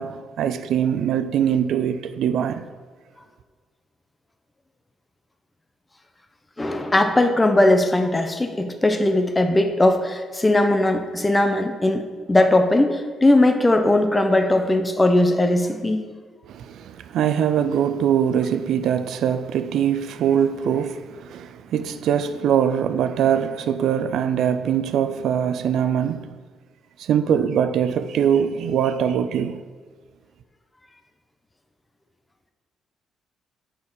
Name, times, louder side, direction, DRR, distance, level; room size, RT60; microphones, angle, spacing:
voice 1, 0.0-2.6 16.5-26.4 27.0-29.6, right 8 dB, 75° right, 0.3 m, -22 dB
voice 2, 6.6-16.0, left 1 dB, 15° left, 0.7 m, -19 dB
6.5 x 4.3 x 5.6 m
cardioid pair, 90°, 0 cm